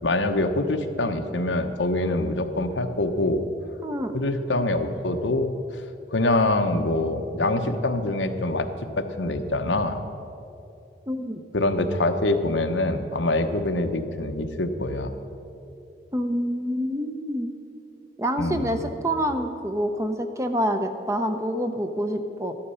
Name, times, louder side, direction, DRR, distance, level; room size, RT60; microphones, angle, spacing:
voice 1, 0.0-3.4 4.1-5.5 6.1-8.7 9.0-10.0 11.5-15.1 18.4-18.8, left 2 dB, 80° left, 6 dB, 0.9 m, -24 dB
voice 2, 11.1-11.4 16.1-17.5 18.2-22.5, equal, 15° right, 7 dB, 0.6 m, -27 dB
13.5 x 11.5 x 5.6 m, 2.7 s
head